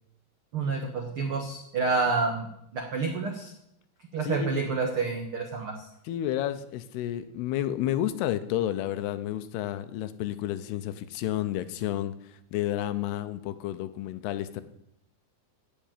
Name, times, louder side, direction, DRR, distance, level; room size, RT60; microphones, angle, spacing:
voice 1, 0.5-2.5 2.7-3.5 4.1-5.9, right 4 dB, 90° right, 3 dB, 1.1 m, -28 dB
voice 2, 4.3-4.7 6.1-12.1 12.5-14.6, left 12 dB, 90° left, 12 dB, 2.8 m, -31 dB
14.5 x 5.6 x 9.0 m, 0.77 s
omnidirectional pair, 4.6 m